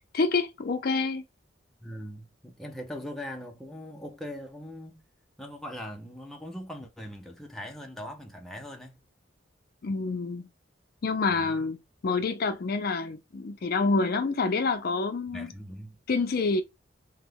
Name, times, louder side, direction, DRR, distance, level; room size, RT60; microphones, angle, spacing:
voice 1, 0.1-1.2 9.8-10.5 11.0-11.8 12.0-15.5 16.1-16.6, left 4 dB, 55° left, 0.5 m, -27 dB
voice 2, 1.8-5.0 5.4-9.0 11.3-11.7 15.3-16.0, equal, ahead, 0.5 m, -41 dB
3.0 x 2.1 x 3.5 m
head